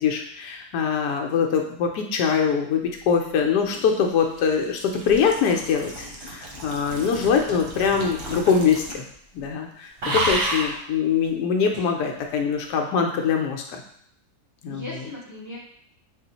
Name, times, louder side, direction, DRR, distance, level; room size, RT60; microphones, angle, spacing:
voice 1, 0.0-9.0 9.3-13.8 14.6-14.8, left 6 dB, 85° left, 3 dB, 1.2 m, -23 dB
sound 1, 3.4-9.1 9.4-9.6 10.0-10.8 11.7-11.9, right 1 dB, 50° right, 0.8 m, -31 dB
voice 2, 6.9-7.2 14.7-15.6, left 2 dB, 20° left, -6 dB, 0.5 m, -38 dB
3.6 x 2.4 x 4.0 m, 0.66 s
omnidirectional pair, 1.7 m